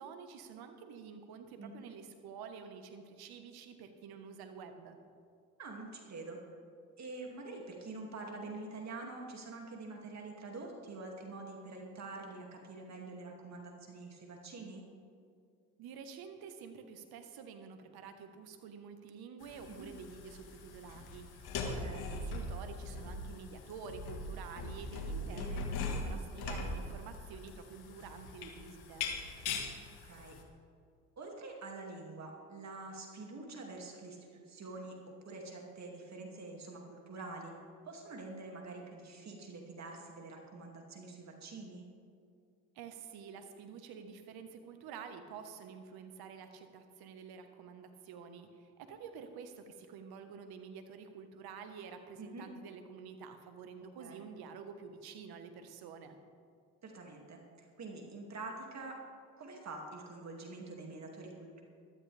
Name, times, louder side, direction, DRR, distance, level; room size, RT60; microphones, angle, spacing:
voice 1, 0.0-5.0 15.8-29.1 42.7-56.2, right 6 dB, 70° right, 7 dB, 1.5 m, -49 dB
voice 2, 1.6-1.9 5.6-6.4 7.0-14.8 19.7-19.9 21.6-22.1 25.3-25.6 30.0-30.4 31.2-35.0 35.3-37.5 37.8-41.9 52.2-52.5 54.0-54.2 56.8-59.0 59.4-61.6, right 3 dB, 45° right, 1 dB, 2.5 m, -46 dB
sound 1, 19.4-30.4, left 2 dB, 70° left, 1.8 m, -41 dB
15.0 x 13.0 x 3.5 m, 2.3 s
hypercardioid pair, 65°, 39 cm